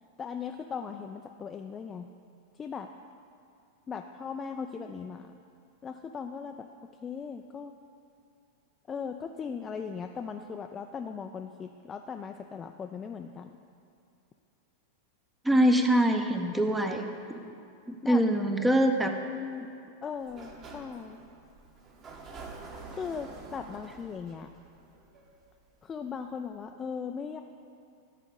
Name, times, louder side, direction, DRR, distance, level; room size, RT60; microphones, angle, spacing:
voice 1, 0.2-2.1 2.6-2.9 3.9-5.3 5.8-6.7 7.0-7.7 8.9-13.6 17.1-17.5 18.0-18.2 19.4-19.6 20.0-21.2 22.9-24.5 25.8-27.4, left 6 dB, 20° left, 5 dB, 0.4 m, -38 dB
voice 2, 15.4-17.4 17.9-19.1, right 1 dB, 5° right, 4 dB, 0.7 m, -24 dB
Sliding door, 20.2-25.8, right 3 dB, 30° right, 1.3 m, -47 dB
10.5 x 4.9 x 8.0 m, 2.4 s
figure-of-eight pair, 90°, 0 cm